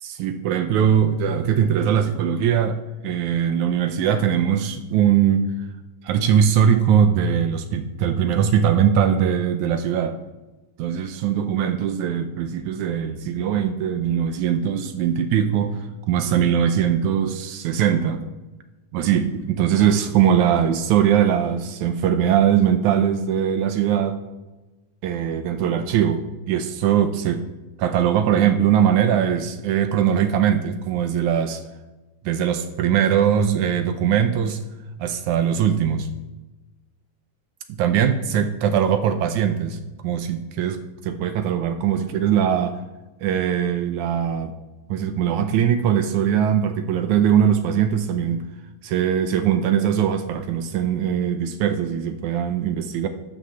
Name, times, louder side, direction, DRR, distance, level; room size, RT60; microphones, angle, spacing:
voice 1, 0.0-2.8 3.0-5.4 6.0-10.2 10.8-18.2 18.9-24.2 25.0-26.2 26.5-27.4 27.8-31.6 32.3-34.6 35.0-36.1 37.8-39.8 40.0-42.8 43.2-44.5 44.9-48.4 48.8-53.1, right 8 dB, 75° right, 8 dB, 1.9 m, -21 dB
11.5 x 5.9 x 6.7 m, 1.1 s
omnidirectional pair, 3.8 m